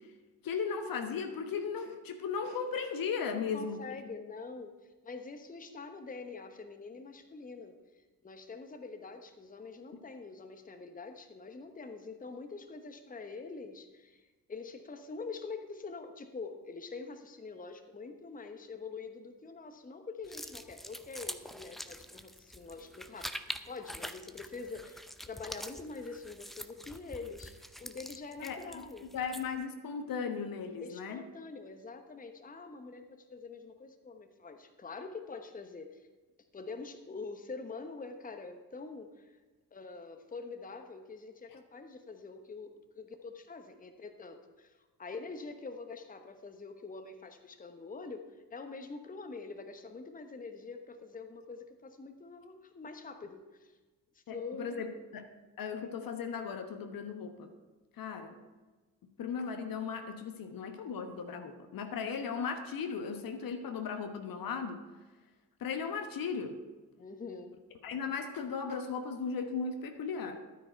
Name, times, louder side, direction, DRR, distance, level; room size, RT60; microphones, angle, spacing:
voice 1, 0.4-3.8 28.4-28.6 29.1-31.2 54.3-54.9 55.1-55.3 55.6-57.5 58.0-58.4 59.2-64.8 65.6-66.6 67.8-70.4, left 6 dB, 45° left, 7 dB, 1.2 m, -36 dB
voice 2, 3.3-4.7 5.0-7.8 8.2-14.2 14.5-23.3 23.7-29.1 30.8-36.1 36.5-39.3 39.7-53.7 54.1-54.8 67.0-67.5, left 4 dB, 15° left, 7 dB, 1.1 m, -45 dB
sound 1, 20.2-29.6, equal, ahead, 0.5 m, -45 dB
12.5 x 9.3 x 4.5 m, 1.3 s
figure-of-eight pair, 45°, 47 cm